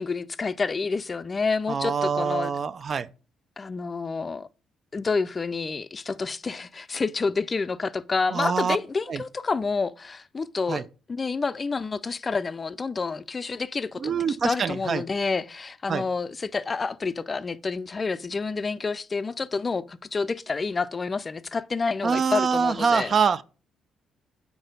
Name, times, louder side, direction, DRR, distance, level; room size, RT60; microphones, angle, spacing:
voice 1, 0.0-2.5 3.6-4.5 4.9-23.1, left 4 dB, 30° left, 0.3 m, -29 dB
voice 2, 1.7-3.1 8.3-8.8 9.1-9.2 10.7-10.8 14.0-15.0 15.9-16.0 22.0-23.4, right 6 dB, 45° right, 0.3 m, -25 dB
4.6 x 4.0 x 5.1 m
cardioid pair, 90°, 0 cm